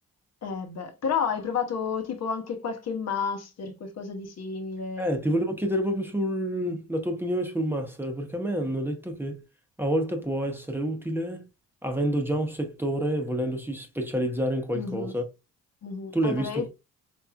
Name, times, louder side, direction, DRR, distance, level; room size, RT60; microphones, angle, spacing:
voice 1, 0.4-5.1 14.7-15.2 15.8-16.7, left 6 dB, 60° left, 1.0 m, -31 dB
voice 2, 5.0-9.4 9.8-11.4 11.8-15.2 16.1-16.7, right 1 dB, 5° right, 0.9 m, -28 dB
4.3 x 3.3 x 2.4 m
cardioid pair, 90°, 30 cm